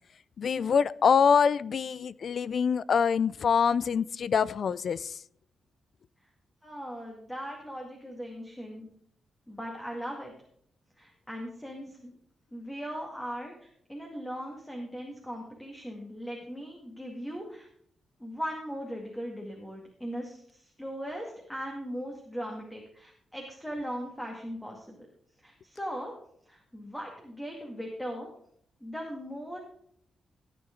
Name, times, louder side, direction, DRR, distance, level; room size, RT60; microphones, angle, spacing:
voice 1, 0.4-5.2, left 6 dB, 55° left, 0.4 m, -25 dB
voice 2, 6.6-8.9 9.5-10.3 11.0-12.1 12.5-17.7 18.2-25.1 25.4-26.1 26.5-28.3 28.8-29.6, equal, 5° left, 2.1 m, -39 dB
15.5 x 9.2 x 3.8 m
cardioid pair, 120°, 0 cm